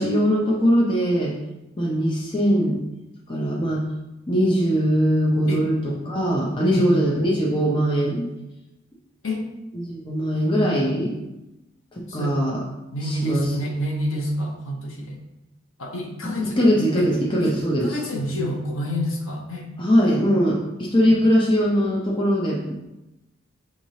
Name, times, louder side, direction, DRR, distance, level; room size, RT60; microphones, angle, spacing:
voice 1, 0.0-1.3 1.8-2.8 3.3-3.9 4.3-8.3 9.7-11.2 11.9-12.6 13.1-13.4 16.2-18.0 19.8-22.7, equal, 25° left, -4 dB, 0.6 m, -21 dB
voice 2, 12.9-15.2 15.8-16.7 17.0-17.1 17.4-19.7 21.0-21.2, left 1 dB, 85° left, 1 dB, 0.8 m, -28 dB
5.9 x 3.1 x 2.8 m, 0.95 s
head